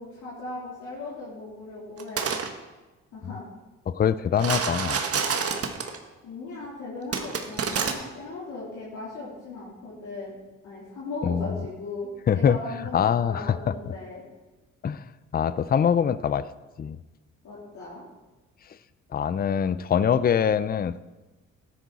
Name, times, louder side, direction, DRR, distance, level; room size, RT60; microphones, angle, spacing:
voice 1, 0.0-2.3 3.1-3.4 6.2-10.4 10.6-14.2 17.4-18.1, left 2 dB, 75° left, -7 dB, 3.5 m, -38 dB
sound 1, 2.0-2.5 4.4-6.0 7.1-7.9, right 6 dB, 50° right, 1.4 m, -27 dB
voice 2, 3.9-5.0 11.2-11.6 12.3-12.6 12.9-13.7 14.8-15.0 15.3-16.5 16.8-17.0 19.1-21.0, left 8 dB, 30° left, 16 dB, 0.5 m, -23 dB
13.5 x 10.0 x 4.1 m, 1.1 s
cardioid pair, 90°, 30 cm